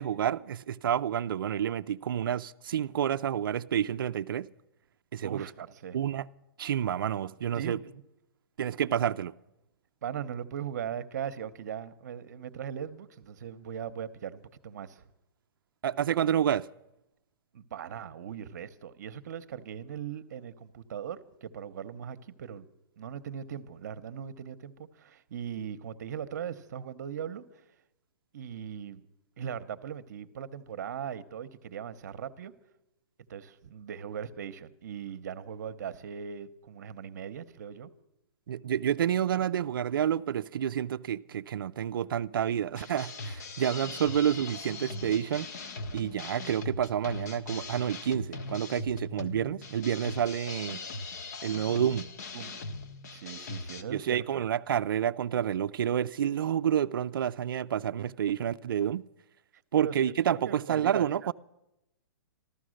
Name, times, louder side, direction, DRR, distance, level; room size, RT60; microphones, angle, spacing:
voice 1, 0.0-4.5 5.1-5.5 5.9-6.3 6.6-7.8 8.6-9.3 15.8-16.7 38.5-45.5 45.9-50.8 51.4-52.1 53.9-59.0 59.7-61.3, right 9 dB, 65° right, 0.4 m, -29 dB
voice 2, 5.2-6.0 7.5-7.9 10.0-15.0 17.5-22.7 23.0-27.4 28.3-29.0 29.4-32.5 33.3-37.9 52.3-52.6 53.1-54.4 59.8-61.1, right 8 dB, 45° right, 0.8 m, -39 dB
sound 1, 42.7-53.8, left 3 dB, 45° left, 1.0 m, -40 dB
14.5 x 13.0 x 6.4 m
hypercardioid pair, 170°, 12 cm